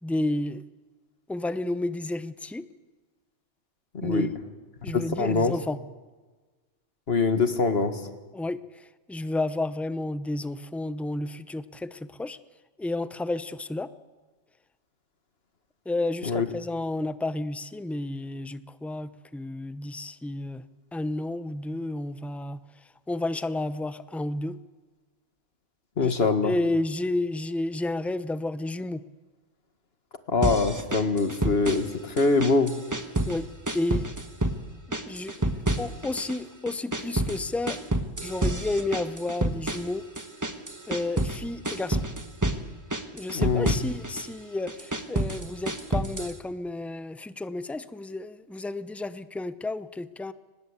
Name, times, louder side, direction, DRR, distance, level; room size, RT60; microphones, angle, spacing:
voice 1, 0.0-0.6 1.3-2.7 4.0-4.3 4.8-5.8 8.3-12.4 12.8-13.9 15.9-20.6 20.9-22.6 23.1-24.6 26.0-29.0 33.3-33.5 33.7-34.0 34.9-35.5 35.8-37.8 38.2-40.1 40.9-42.0 43.1-50.3, left 2 dB, ahead, 13 dB, 0.5 m, -31 dB
voice 2, 3.9-4.3 4.9-5.5 7.1-8.0 16.3-16.5 26.0-26.5 30.3-32.7 43.3-43.8, left 4 dB, 55° left, 9 dB, 1.9 m, -24 dB
sound 1, 30.4-31.9 32.2-33.4 33.7-34.6 34.9-36.4 36.7-41.4 41.6-42.6 42.9-44.3 44.7-46.4, right 1 dB, 15° right, 1.4 m, -29 dB
23.5 x 20.0 x 8.2 m, 1.3 s
omnidirectional pair, 1.2 m